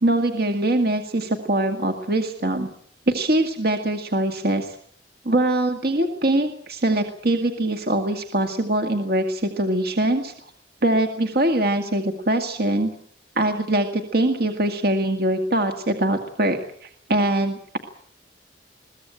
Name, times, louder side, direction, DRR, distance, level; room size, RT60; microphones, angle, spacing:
voice 1, 0.0-2.7 3.1-4.8 5.3-10.3 10.8-12.9 13.4-17.8, right 1 dB, 60° right, 5 dB, 2.0 m, -22 dB
22.0 x 16.5 x 9.0 m, 0.63 s
head